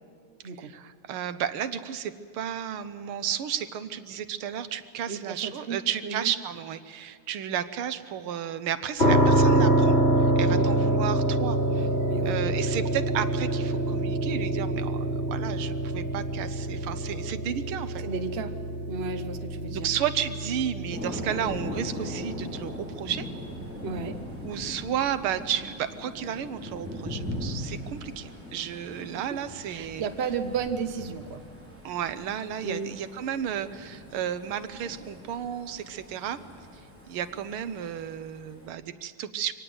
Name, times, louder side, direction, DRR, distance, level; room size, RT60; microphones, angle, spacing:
voice 1, 0.6-11.9 12.2-18.0 19.7-23.3 24.4-30.1 31.8-36.4 37.1-39.5, right 9 dB, 90° right, 12 dB, 1.8 m, -33 dB
voice 2, 5.1-6.3 10.5-10.7 11.6-12.4 18.0-18.5 18.9-19.9 23.8-24.2 29.7-31.4 32.6-33.0, right 5 dB, 40° right, 8 dB, 1.1 m, -33 dB
sound 1, 9.0-23.8, right 1 dB, 30° left, 3.2 m, -26 dB
Thunder, 20.9-38.7, left 1 dB, 5° right, 5.7 m, -40 dB
24.5 x 18.0 x 7.9 m, 2.2 s
omnidirectional pair, 2.3 m